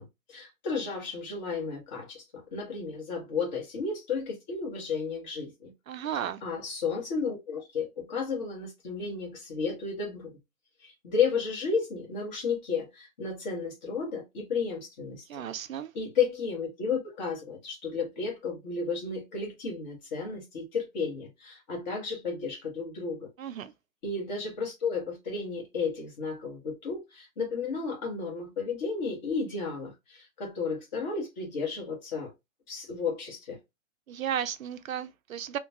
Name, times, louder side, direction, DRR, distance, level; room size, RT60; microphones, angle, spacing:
voice 1, 0.0-5.7 6.0-10.3 10.8-15.2 15.9-23.3 24.0-32.3 32.7-33.6, left 5 dB, 35° left, 1.2 m, -33 dB
voice 2, 5.9-6.4 15.3-15.9 23.4-23.7 34.1-35.6, right 9 dB, 80° right, 0.5 m, -34 dB
3.0 x 2.2 x 2.6 m
hypercardioid pair, 150°, 40 cm